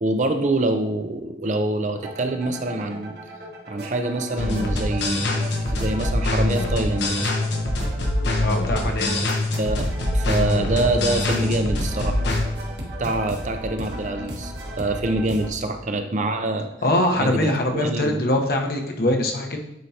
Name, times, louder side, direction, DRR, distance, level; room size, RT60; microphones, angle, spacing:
voice 1, 0.0-3.2 3.7-7.3 9.6-12.2 13.0-16.7 17.2-18.3, right 2 dB, 40° right, 6 dB, 0.6 m, -25 dB
sound 1, 2.0-15.5, right 1 dB, 60° right, 1.5 m, -35 dB
sound 2, 4.4-12.4, left 1 dB, 80° left, 1.1 m, -24 dB
voice 2, 8.4-9.3 16.8-19.6, left 1 dB, 55° left, 3 dB, 1.0 m, -23 dB
9.3 x 4.5 x 2.8 m, 0.86 s
head